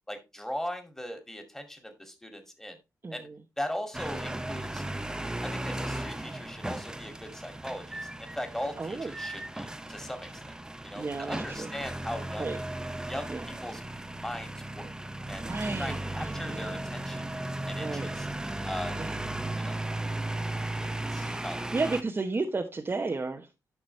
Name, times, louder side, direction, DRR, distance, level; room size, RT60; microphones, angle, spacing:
voice 1, 0.1-2.8 3.1-3.3 3.6-4.8 5.4-10.5 10.8-12.5 13.1-13.8 14.2-14.9 15.3-15.5 15.8-17.2 17.7-18.3 18.6-19.0 19.6-19.8 20.8-21.7, equal, 5° left, 2.3 m, -39 dB
voice 2, 3.0-3.4 8.8-9.1 11.0-11.7 12.4-12.6 13.3-13.5 15.4-16.7 17.8-18.1 19.0-19.2 21.2-23.5, right 3 dB, 35° right, 0.9 m, -33 dB
sound 1, 3.9-22.0, right 1 dB, 10° right, 0.7 m, -36 dB
10.5 x 6.1 x 3.2 m
cardioid pair, 70°, 7 cm